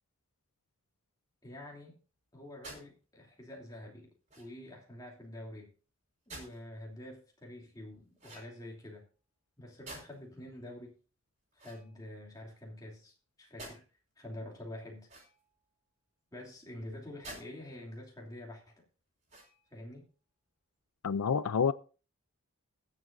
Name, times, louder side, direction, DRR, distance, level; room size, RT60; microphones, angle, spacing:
voice 1, 1.4-1.9 2.3-5.7 6.3-9.0 9.6-11.0 11.5-13.8 14.2-15.1 16.3-18.8 19.7-20.1, left 1 dB, 15° left, 2.8 m, -47 dB
sound 1, 2.6-2.9 4.3-4.7 6.3-6.6 8.2-8.8 9.8-10.3 11.5-12.4 13.6-13.8 15.0-15.6 17.2-17.5 18.0-18.1 19.2-19.8, right 2 dB, 30° right, 5.0 m, -50 dB
voice 2, 21.0-21.7, left 6 dB, 90° left, 0.5 m, -28 dB
21.5 x 7.5 x 2.6 m
head